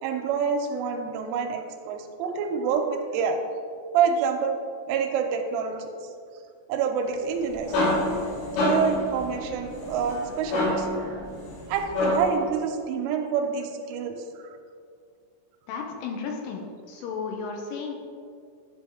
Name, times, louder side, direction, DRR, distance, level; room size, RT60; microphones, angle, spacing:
voice 1, 0.0-1.6 1.9-3.4 3.9-4.6 4.9-5.9 6.7-7.8 8.6-11.3 11.7-14.5, right 6 dB, 85° right, 4 dB, 3.2 m, -27 dB
sound 1, 7.2-12.5, left 1 dB, 70° left, 4.5 m, -28 dB
voice 2, 15.7-16.6 16.9-18.0, left 5 dB, 90° left, 2 dB, 3.3 m, -33 dB
11.0 x 5.4 x 3.6 m, 2.3 s
omnidirectional pair, 5.7 m